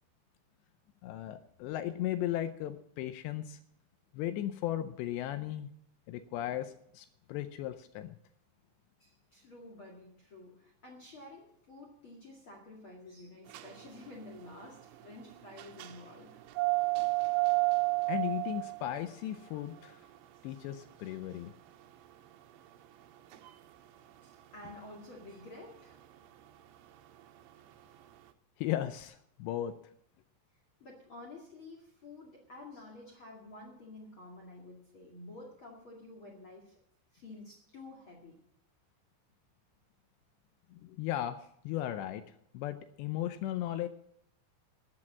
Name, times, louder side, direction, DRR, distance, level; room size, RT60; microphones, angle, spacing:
voice 1, 1.0-3.6 4.1-5.7 6.1-8.2 18.1-20.0 20.4-21.5 28.6-29.7 40.7-42.2 42.5-43.9, left 12 dB, 80° left, 10 dB, 2.6 m, -36 dB
voice 2, 9.0-16.4 24.2-26.3 30.8-36.7 37.1-38.4, left 2 dB, 45° left, 0 dB, 1.8 m, -50 dB
sound 1, 13.5-28.2, right 28 dB, 85° right, 3.1 m, -35 dB
14.0 x 7.8 x 7.4 m, 0.72 s
omnidirectional pair, 5.4 m